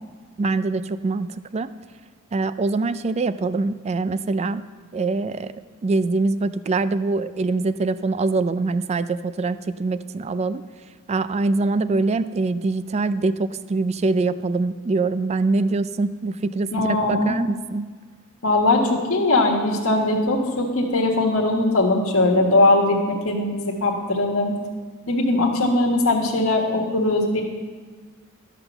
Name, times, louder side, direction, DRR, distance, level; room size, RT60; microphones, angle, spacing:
voice 1, 0.4-1.3 1.5-1.7 2.3-4.6 4.9-5.5 5.8-10.6 11.1-17.9, right 3 dB, 30° right, 14 dB, 0.3 m, -23 dB
voice 2, 16.7-17.4 18.4-24.6 25.1-27.4, left 2 dB, 70° left, 0 dB, 1.5 m, -20 dB
12.5 x 5.8 x 7.0 m, 1.5 s
head